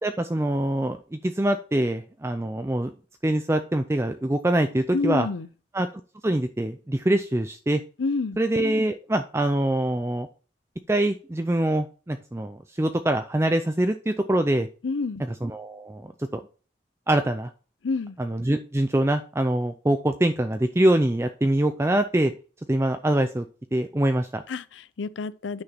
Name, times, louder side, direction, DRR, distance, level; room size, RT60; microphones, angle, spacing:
voice 1, 0.0-2.9 3.2-5.3 5.7-5.9 6.2-7.8 8.4-10.3 10.9-14.7 15.4-16.4 17.1-17.5 18.2-22.3 22.7-23.5 23.7-24.4, right 1 dB, 15° right, 0.4 m, -24 dB
voice 2, 4.9-5.5 8.0-8.4 14.8-15.2 17.8-18.2 24.5-25.6, left 4 dB, 85° left, 0.6 m, -28 dB
9.6 x 6.1 x 2.9 m
head